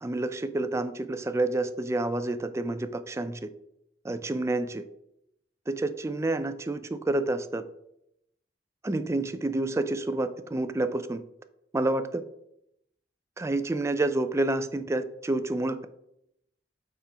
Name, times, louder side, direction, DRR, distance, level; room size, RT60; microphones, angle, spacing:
voice 1, 0.0-3.4 4.0-4.8 5.7-7.6 8.8-11.2 11.7-12.2 13.4-15.9, right 2 dB, 15° right, 10 dB, 0.3 m, -29 dB
5.8 x 4.3 x 4.8 m, 0.78 s
head